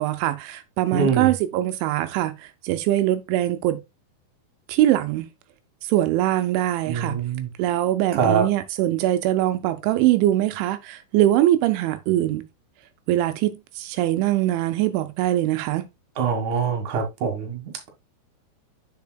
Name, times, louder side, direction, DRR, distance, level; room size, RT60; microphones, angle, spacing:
voice 1, 0.0-3.8 4.7-5.3 5.8-7.2 7.6-12.5 13.1-15.9, right 14 dB, 80° right, 2.9 m, -22 dB
voice 2, 0.9-1.3 6.9-7.5 8.1-8.5 16.2-17.9, right 6 dB, 55° right, 2.4 m, -24 dB
7.5 x 6.9 x 2.3 m
omnidirectional pair, 5.5 m